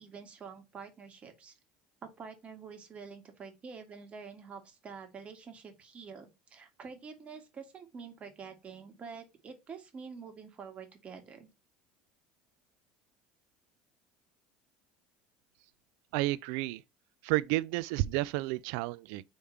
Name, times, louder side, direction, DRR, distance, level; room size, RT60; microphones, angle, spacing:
voice 1, 0.0-1.5 2.0-11.5, right 5 dB, 35° right, 1.8 m, -47 dB
voice 2, 16.1-16.8 17.2-19.2, right 18 dB, 75° right, 0.4 m, -31 dB
4.8 x 3.5 x 5.6 m
supercardioid pair, 95°, 4 cm